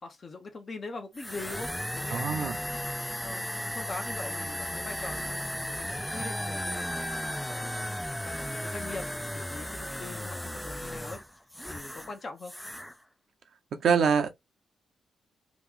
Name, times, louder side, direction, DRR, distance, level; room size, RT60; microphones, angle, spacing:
voice 1, 0.0-2.9 3.2-5.5 5.9-7.0 7.5-11.2 11.7-12.6, left 3 dB, 50° left, 0.8 m, -42 dB
sound 1, 1.1-12.1 12.4-12.9, left 1 dB, 5° left, 0.3 m, -35 dB
voice 2, 2.1-2.6 13.8-14.3, right 6 dB, 70° right, 0.7 m, -24 dB
2.9 x 2.4 x 3.6 m
supercardioid pair, 50°, 0 cm